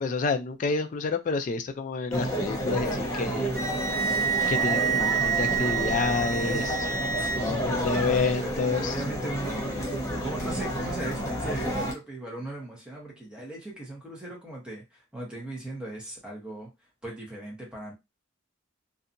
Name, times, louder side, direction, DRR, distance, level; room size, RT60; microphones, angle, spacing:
voice 1, 0.0-3.5 4.5-6.8 7.3-8.9, left 4 dB, 40° left, 0.3 m, -29 dB
sound 1, 2.1-11.9, equal, 15° left, 0.7 m, -30 dB
Wind instrument woodwind instrument, 3.5-7.4, right 7 dB, 50° right, 1.5 m, -28 dB
voice 2, 7.2-9.9 10.2-16.7 17.0-17.9, right 1 dB, 5° right, 0.9 m, -38 dB
2.7 x 2.3 x 2.6 m
head